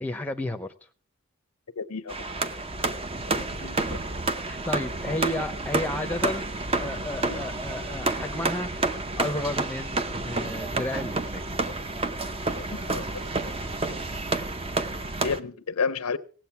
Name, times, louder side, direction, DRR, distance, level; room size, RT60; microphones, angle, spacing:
voice 1, 0.0-0.7 4.4-6.5 6.8-11.5, left 1 dB, 5° left, 0.7 m, -32 dB
voice 2, 1.8-2.1 3.4-4.0 7.3-7.4 12.7-13.1 13.9-14.0 15.2-16.2, left 5 dB, 90° left, 0.8 m, -31 dB
sound 1, 2.1-15.4, right 2 dB, 25° right, 0.7 m, -30 dB
17.5 x 7.7 x 5.8 m
head